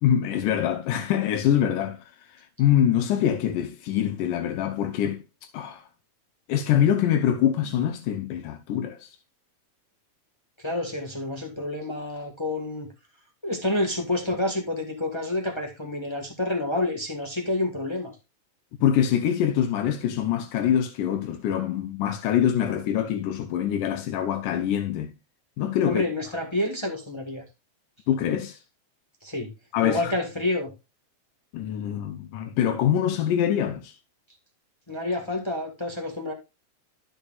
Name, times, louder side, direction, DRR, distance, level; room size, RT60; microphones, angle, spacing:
voice 1, 0.0-5.2 5.5-5.9 6.5-9.1 18.8-25.1 25.6-26.0 28.1-28.6 29.7-30.1 31.5-33.9, left 10 dB, 85° left, 2.3 m, -24 dB
voice 2, 10.6-12.9 13.4-18.1 25.8-27.4 29.2-29.5 29.8-30.7 34.9-36.3, left 2 dB, 40° left, 0.3 m, -28 dB
12.5 x 6.6 x 2.4 m
omnidirectional pair, 3.5 m